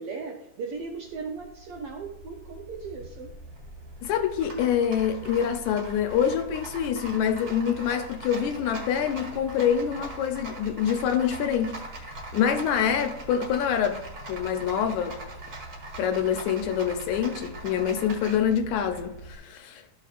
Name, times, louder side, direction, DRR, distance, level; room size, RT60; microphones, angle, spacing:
voice 1, 0.0-3.3, right 4 dB, 75° right, 1 dB, 1.3 m, -37 dB
Rattle, 0.8-19.4, right 1 dB, 40° right, 1.5 m, -41 dB
voice 2, 4.0-14.0 14.3-15.2 16.0-19.8, left 8 dB, 80° left, 6 dB, 2.0 m, -26 dB
13.0 x 6.0 x 2.5 m, 0.83 s
omnidirectional pair, 3.4 m